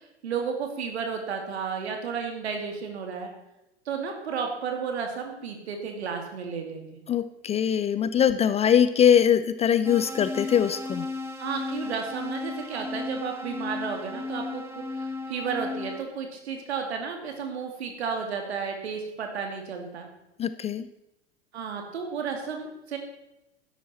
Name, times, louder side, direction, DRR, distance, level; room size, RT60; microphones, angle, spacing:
voice 1, 0.2-3.3 3.9-6.8 11.4-20.1 21.5-23.0, right 6 dB, 70° right, 3 dB, 2.7 m, -33 dB
voice 2, 7.1-11.1 20.4-20.9, left 9 dB, 20° left, 13 dB, 0.4 m, -22 dB
sound 1, 9.8-16.0, left 3 dB, 10° right, 1.7 m, -35 dB
12.0 x 11.0 x 4.4 m, 0.91 s
figure-of-eight pair, 85°, 33 cm